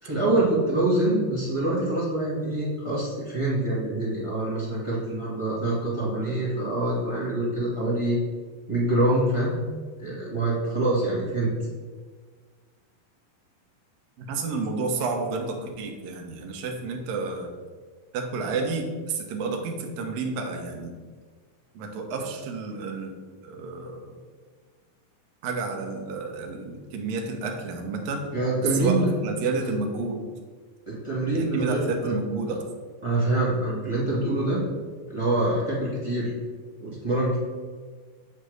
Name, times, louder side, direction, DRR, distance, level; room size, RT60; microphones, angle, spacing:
voice 1, 0.0-8.2 8.7-9.6 10.0-11.5 28.3-29.1 29.6-29.7 30.9-32.1 32.5-32.6 33.0-34.6 35.1-36.3 36.8-37.4, right 2 dB, 25° right, -7 dB, 0.6 m, -25 dB
voice 2, 14.2-17.5 18.1-21.0 21.7-23.2 23.5-24.2 25.4-28.2 28.8-30.2 31.3-32.6, right 4 dB, 65° right, 2 dB, 1.8 m, -30 dB
7.9 x 3.3 x 6.4 m, 1.5 s
omnidirectional pair, 3.9 m